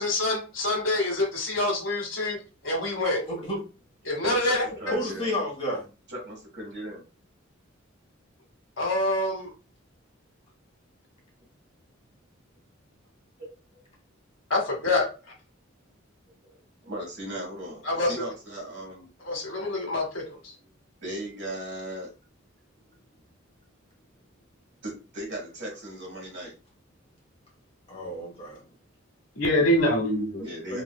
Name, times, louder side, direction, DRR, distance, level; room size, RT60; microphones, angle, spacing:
voice 1, 0.0-2.4 2.6-3.2 4.0-4.6 8.8-9.5 14.5-15.1 17.8-18.2 19.2-20.5 29.4-30.4, left 1 dB, 80° left, 1 dB, 1.1 m, -26 dB
voice 2, 4.2-5.3 6.1-7.0 13.4-13.5 16.5-16.6 16.8-19.1 21.0-22.1 24.8-26.5 30.4-30.8, right 1 dB, 60° right, -2 dB, 1.6 m, -37 dB
voice 3, 4.9-5.9 27.9-28.6 30.7-30.8, equal, 30° left, -3 dB, 1.4 m, -31 dB
3.1 x 2.7 x 2.2 m, 0.31 s
head